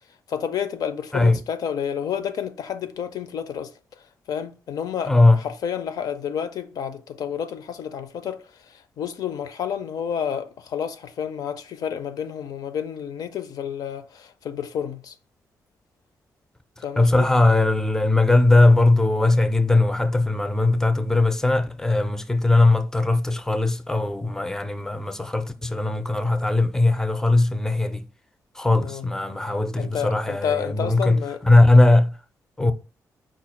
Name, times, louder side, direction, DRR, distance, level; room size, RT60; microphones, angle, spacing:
voice 1, 0.3-3.7 4.3-5.1 5.4-15.1 16.8-17.3 28.8-29.1 29.8-31.4, left 8 dB, 70° left, 0.5 m, -30 dB
voice 2, 5.1-5.4 16.8-28.1 28.6-32.1 32.6-32.7, left 2 dB, 10° left, 0.4 m, -19 dB
4.8 x 2.3 x 4.3 m
cardioid pair, 125°, 7 cm